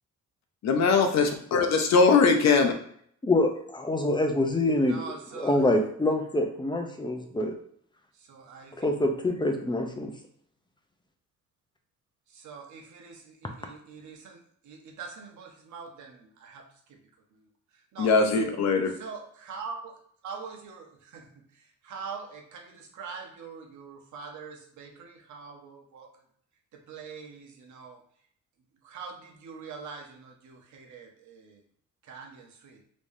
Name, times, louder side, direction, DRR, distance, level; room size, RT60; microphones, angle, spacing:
voice 1, 0.6-2.7 18.0-18.9, left 4 dB, 60° left, 5 dB, 0.7 m, -21 dB
voice 2, 3.2-5.0 5.3-7.5 8.8-10.1, left 1 dB, 15° left, 4 dB, 0.6 m, -25 dB
voice 3, 4.7-5.6 8.2-8.7 12.3-17.0 17.9-18.4 19.0-19.9 20.2-21.3 21.5-26.1 26.7-28.0 28.8-31.6 32.0-32.8, right 5 dB, 70° right, 2 dB, 0.9 m, -43 dB
3.4 x 3.1 x 2.6 m, 0.64 s
cardioid pair, 90°, 30 cm